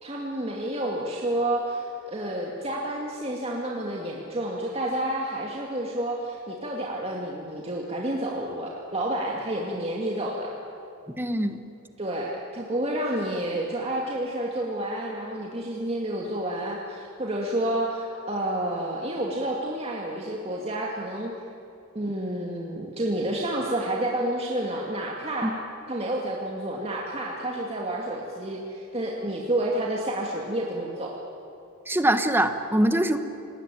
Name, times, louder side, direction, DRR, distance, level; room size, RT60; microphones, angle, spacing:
voice 1, 0.0-10.5 12.0-21.3 21.9-25.5 25.9-31.2, right 1 dB, 30° right, -2 dB, 2.2 m, -29 dB
voice 2, 11.2-11.6 25.4-25.5 31.9-33.2, right 1 dB, 10° right, 8 dB, 1.3 m, -23 dB
30.0 x 19.5 x 9.1 m, 2.6 s
head